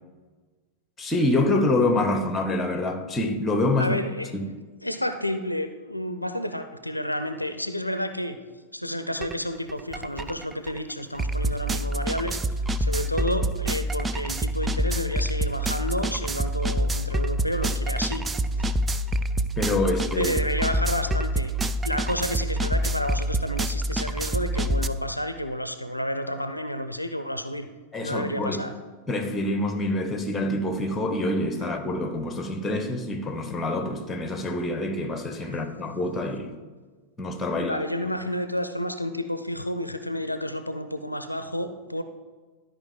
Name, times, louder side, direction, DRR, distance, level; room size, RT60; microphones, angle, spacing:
voice 1, 1.0-4.0 4.3-4.5 19.6-20.3 27.9-28.6 29.1-36.5 37.2-37.8, left 2 dB, 15° left, 1.0 m, -26 dB
voice 2, 3.8-4.3 4.8-8.4 8.7-12.4 12.8-18.3 20.2-21.5 21.8-27.7 28.0-28.7 37.5-42.0, left 1 dB, 85° left, 0.4 m, -30 dB
sound 1, 9.2-9.4 9.7-24.9, right 1 dB, 15° right, 0.4 m, -27 dB
12.5 x 5.0 x 3.8 m
figure-of-eight pair, 90°, 0 cm